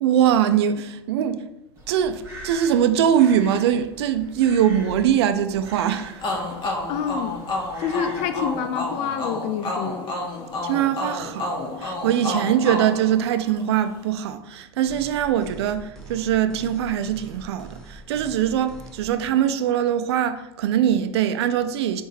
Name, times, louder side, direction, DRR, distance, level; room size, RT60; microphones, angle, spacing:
voice 1, 0.0-1.4 1.9-6.4 10.6-11.5 11.8-22.0, right 9 dB, 70° right, 0.4 m, -22 dB
Crow, 1.8-8.6, right 1 dB, 20° right, 1.4 m, -43 dB
sound 1, 6.2-13.8, left 2 dB, 35° left, 1.0 m, -30 dB
voice 2, 6.9-7.4 7.8-10.1, left 8 dB, 50° left, 0.5 m, -27 dB
sound 2, 14.9-19.3, right 3 dB, 5° left, 0.9 m, -43 dB
4.2 x 3.7 x 2.7 m
hypercardioid pair, 85°, 14 cm